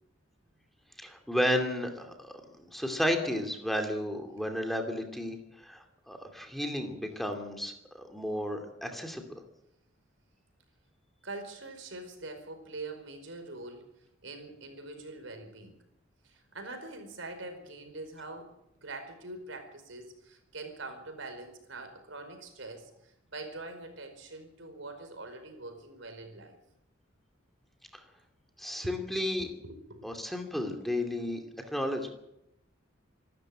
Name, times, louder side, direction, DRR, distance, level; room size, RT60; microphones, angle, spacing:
voice 1, 1.0-9.3 28.6-29.5 30.0-32.1, left 1 dB, ahead, 4 dB, 2.5 m, -33 dB
voice 2, 11.2-13.9 14.2-15.8 16.2-26.6 29.4-30.2, right 2 dB, 70° right, 7 dB, 5.0 m, -44 dB
26.5 x 13.0 x 8.8 m, 0.83 s
head